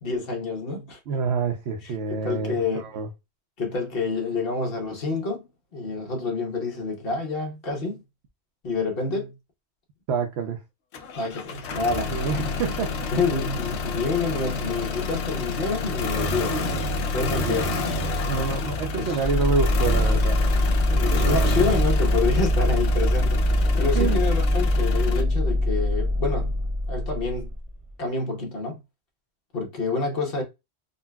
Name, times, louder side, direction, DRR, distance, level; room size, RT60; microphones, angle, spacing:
voice 1, 0.0-1.0 2.1-2.9 3.6-8.0 8.6-9.4 11.1-12.1 13.1-17.8 19.0-19.2 20.9-26.6 26.9-27.5 28.0-28.8 29.5-30.4, left 3 dB, 55° left, 1.1 m, -28 dB
voice 2, 1.1-3.1 10.1-10.6 12.1-13.1 17.0-17.6 18.2-20.4 20.9-21.7 23.9-24.2, right 5 dB, 70° right, 0.9 m, -28 dB
sound 1, 10.9-25.2, left 3 dB, 75° left, 0.9 m, -29 dB
sound 2, 19.2-27.9, left 1 dB, 30° right, 1.0 m, -23 dB
3.8 x 2.3 x 2.2 m
omnidirectional pair, 1.2 m